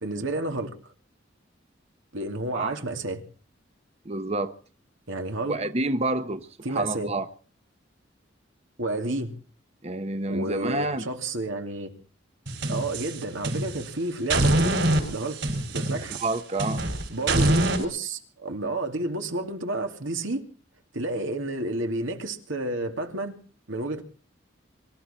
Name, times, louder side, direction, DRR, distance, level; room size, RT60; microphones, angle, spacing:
voice 1, 0.0-0.7 2.1-3.2 5.1-5.6 6.6-7.1 8.8-9.3 10.3-11.9 12.7-14.8 15.1-15.4 15.7-16.2 17.1-20.4 20.9-23.4 23.7-24.0, right 2 dB, 90° right, 2.6 m, -30 dB
voice 2, 4.0-4.6 5.5-7.3 9.8-11.1 15.9-16.9, right 2 dB, 35° right, 0.8 m, -29 dB
sound 1, 12.5-13.9 14.3-17.8, right 1 dB, 65° right, 6.2 m, -25 dB
24.5 x 13.0 x 4.4 m
head